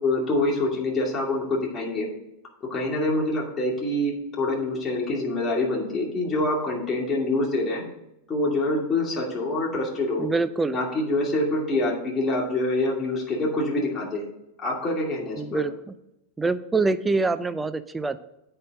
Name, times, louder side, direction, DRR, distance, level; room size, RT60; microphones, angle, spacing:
voice 1, 0.0-2.1 2.7-7.8 8.3-10.3 10.7-14.3 14.6-15.6, left 2 dB, 20° left, -3 dB, 2.4 m, -26 dB
voice 2, 10.2-10.8 15.4-15.9 16.4-18.2, right 3 dB, 10° right, 13 dB, 0.5 m, -25 dB
8.6 x 4.5 x 6.4 m, 0.87 s
hypercardioid pair, 115°, 0 cm